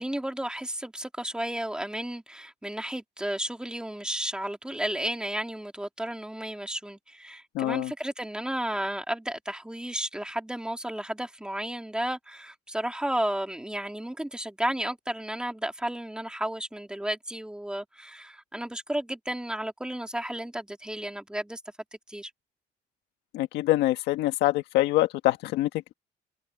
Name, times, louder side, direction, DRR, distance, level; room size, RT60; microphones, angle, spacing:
voice 1, 0.0-21.6 22.1-22.3, right 1 dB, 5° right, 3.4 m, -33 dB
voice 2, 7.5-7.9 23.3-25.9, left 16 dB, 90° left, 1.6 m, -25 dB
cardioid pair, 110°, 17 cm